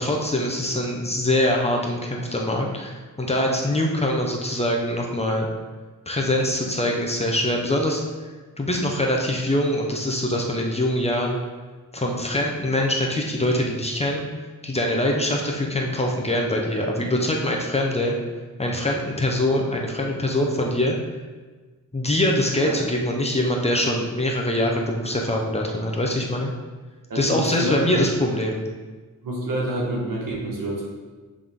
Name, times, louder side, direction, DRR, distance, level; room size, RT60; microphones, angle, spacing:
voice 1, 0.0-5.5 6.1-8.0 8.6-11.4 11.9-14.2 14.6-18.1 18.6-20.9 21.9-26.5 27.1-28.6, left 1 dB, 20° left, 0 dB, 0.8 m, -23 dB
voice 2, 27.1-28.0 29.2-30.9, right 1 dB, 75° right, -3 dB, 1.8 m, -27 dB
8.0 x 3.5 x 3.6 m, 1.3 s
cardioid pair, 110°, 34 cm